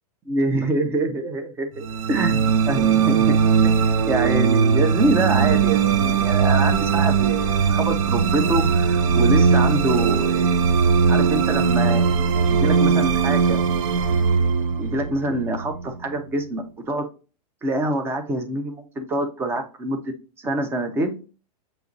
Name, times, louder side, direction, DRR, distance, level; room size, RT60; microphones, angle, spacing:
voice 1, 0.3-3.3 3.6-10.7 11.1-12.1 12.5-13.6 14.8-17.0 17.6-20.1 20.4-21.2, right 1 dB, 10° right, 6 dB, 0.5 m, -25 dB
sound 1, 1.8-16.2, right 6 dB, 55° right, 0.6 m, -19 dB
6.1 x 3.0 x 2.5 m, 0.35 s
supercardioid pair, 155°, 20 cm